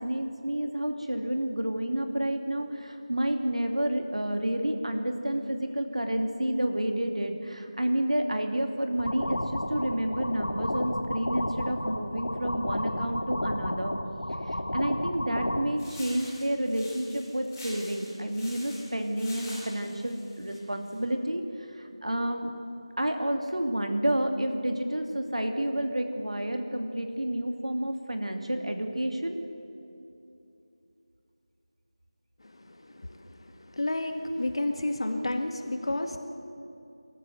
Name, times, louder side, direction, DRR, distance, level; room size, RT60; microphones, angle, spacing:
voice 1, 0.0-14.0 14.5-22.5 23.0-29.4, right 1 dB, 85° right, 5 dB, 2.6 m, -30 dB
sound 1, 9.0-15.6, left 1 dB, 80° left, 2.2 m, -32 dB
sound 2, 15.8-21.0, left 1 dB, 5° left, 5.1 m, -46 dB
voice 2, 32.5-36.2, left 1 dB, 60° left, 5 dB, 2.0 m, -31 dB
25.0 x 13.5 x 8.1 m, 2.7 s
figure-of-eight pair, 170°, 3 cm